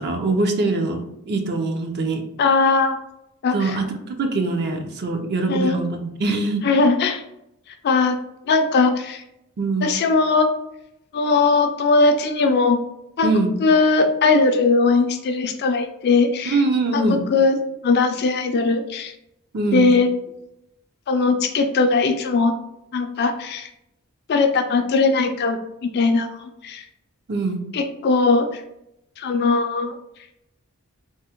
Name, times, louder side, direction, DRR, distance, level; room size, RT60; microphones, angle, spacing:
voice 1, 0.0-2.2 3.5-6.7 9.6-9.9 13.2-13.5 16.5-17.2 19.5-19.9 27.3-27.6, right 2 dB, 50° right, 4 dB, 0.5 m, -23 dB
voice 2, 2.4-3.0 3.4-3.8 5.5-5.8 6.6-7.2 7.8-8.1 8.5-9.2 9.8-10.5 11.1-12.8 13.2-13.3 13.6-16.6 16.9-17.0 17.3-17.6 17.8-19.1 19.7-20.1 21.1-22.5 22.9-23.7 24.3-26.8 27.7-28.6 29.2-30.0, left 4 dB, 50° left, 6 dB, 0.4 m, -19 dB
3.4 x 2.0 x 2.9 m, 0.83 s
head